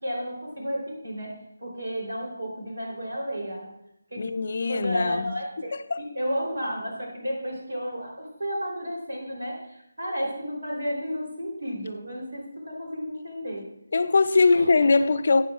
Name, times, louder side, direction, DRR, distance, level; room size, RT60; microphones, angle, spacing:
voice 1, 0.0-3.7 4.1-4.2 4.7-13.7 14.5-14.8, equal, 85° right, 3.6 m, -32 dB
voice 2, 4.2-5.4 5.7-6.0 13.9-15.4, left 3 dB, 55° left, 0.5 m, -21 dB
12.0 x 9.4 x 2.5 m
figure-of-eight pair, 160°, 0 cm